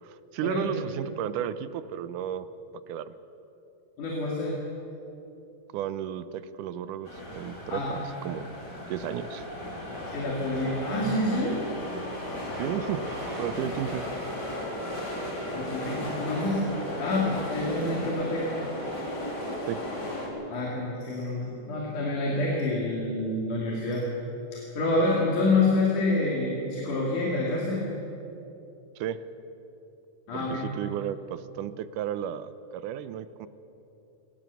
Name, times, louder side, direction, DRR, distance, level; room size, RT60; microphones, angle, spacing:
voice 1, 0.0-2.5 2.9-3.1 5.7-8.5 8.9-9.5 12.6-14.1 19.7-19.8 29.0-29.2 30.3-33.5, right 10 dB, 90° right, 13 dB, 2.3 m, -33 dB
voice 2, 4.0-4.6 7.7-7.9 10.1-11.6 15.5-18.5 20.5-24.1 24.5-27.9 30.3-30.7, left 2 dB, 80° left, -3 dB, 4.0 m, -27 dB
sound 1, 7.0-20.3, left 1 dB, 30° left, 3.8 m, -35 dB
22.5 x 19.0 x 7.0 m, 3.0 s
omnidirectional pair, 3.5 m